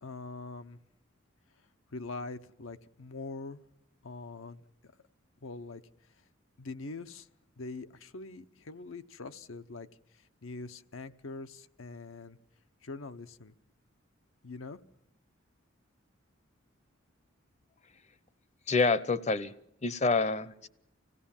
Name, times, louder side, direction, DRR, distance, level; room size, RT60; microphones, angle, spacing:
voice 1, 0.0-0.8 1.9-3.6 4.0-4.9 5.4-5.8 6.6-7.3 7.6-9.9 10.1-12.4 12.8-13.5 14.4-14.8, left 3 dB, 80° left, 9 dB, 0.9 m, -43 dB
voice 2, 18.7-19.5 19.8-20.7, left 4 dB, 35° left, 16 dB, 0.8 m, -27 dB
25.0 x 16.5 x 7.3 m, 0.82 s
head